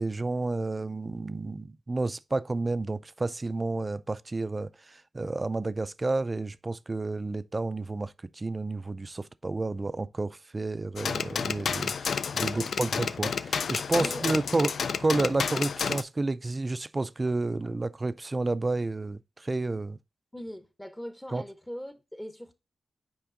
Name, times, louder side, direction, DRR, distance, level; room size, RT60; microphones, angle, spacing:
voice 1, 0.0-14.7 15.0-20.0 21.3-21.4, right 2 dB, 30° right, 0.3 m, -30 dB
sound 1, 11.0-16.0, left 6 dB, 70° left, 0.4 m, -30 dB
voice 2, 12.5-13.1 14.0-14.7 20.3-22.5, equal, 10° left, 0.7 m, -42 dB
5.8 x 4.5 x 3.7 m
cardioid pair, 85°, 0 cm